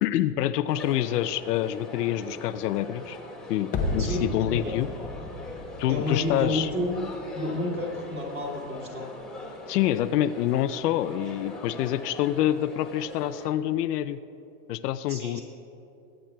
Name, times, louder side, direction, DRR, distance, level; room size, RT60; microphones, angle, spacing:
voice 1, 0.0-3.2 3.5-4.9 5.8-6.7 9.7-14.2 14.7-15.4, left 12 dB, 80° left, 12 dB, 0.6 m, -26 dB
sound 1, 0.7-13.5, left 2 dB, ahead, 1.8 m, -42 dB
sound 2, 3.7-8.7 8.9-9.0, left 2 dB, 20° left, 0.7 m, -34 dB
voice 2, 4.0-4.7 5.9-7.0 7.3-9.1 15.1-15.4, left 1 dB, 20° right, -3 dB, 2.3 m, -30 dB
22.5 x 8.9 x 2.3 m, 2.8 s
supercardioid pair, 145°, 47 cm